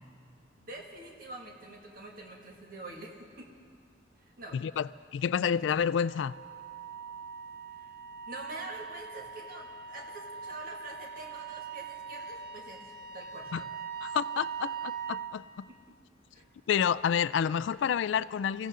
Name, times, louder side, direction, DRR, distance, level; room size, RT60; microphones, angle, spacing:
voice 1, 0.6-3.5 4.4-4.8 7.8-7.9 8.3-13.5 15.7-15.8 16.3-16.4, right 2 dB, 50° right, 0 dB, 1.9 m, -46 dB
voice 2, 4.5-6.4 13.5-13.6 14.0-15.6 16.7-18.7, left 7 dB, 70° left, 19 dB, 0.3 m, -29 dB
Wind instrument woodwind instrument, 5.9-15.4, right 7 dB, 75° right, 0.9 m, -41 dB
23.5 x 16.0 x 3.7 m, 2.3 s
head